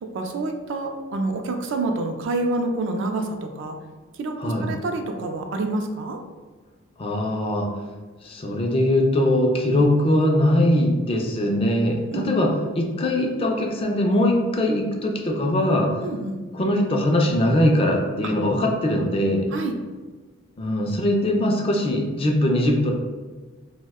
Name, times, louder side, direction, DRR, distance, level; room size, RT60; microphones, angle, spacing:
voice 1, 0.0-3.8 4.2-6.2 12.1-12.3 16.0-16.4 18.2-18.3 19.5-19.7, right 2 dB, 60° right, 4 dB, 0.3 m, -27 dB
voice 2, 7.0-7.7 8.2-15.9 16.5-19.5 20.6-22.9, left 1 dB, 25° left, 1 dB, 0.3 m, -21 dB
2.6 x 2.1 x 3.5 m, 1.4 s
head